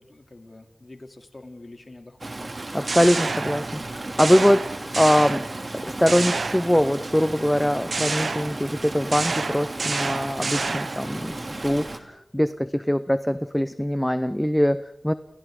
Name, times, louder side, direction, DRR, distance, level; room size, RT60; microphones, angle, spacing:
voice 1, 0.0-2.4 4.8-4.9, left 2 dB, 45° left, 4 dB, 3.1 m, -46 dB
Stream, 2.2-12.0, right 2 dB, 45° right, 2.8 m, -35 dB
sound 1, 2.6-3.9 4.2-5.7 6.1-7.1 7.9-11.1, right 3 dB, 75° right, 1.1 m, -29 dB
voice 2, 2.7-5.5 5.7-15.1, equal, 5° left, 12 dB, 0.8 m, -22 dB
Wind instrument woodwind instrument, 3.8-12.1, right 1 dB, 15° right, 3.1 m, -50 dB
30.0 x 30.0 x 3.9 m, 0.85 s
wide cardioid pair, 70°, 0 cm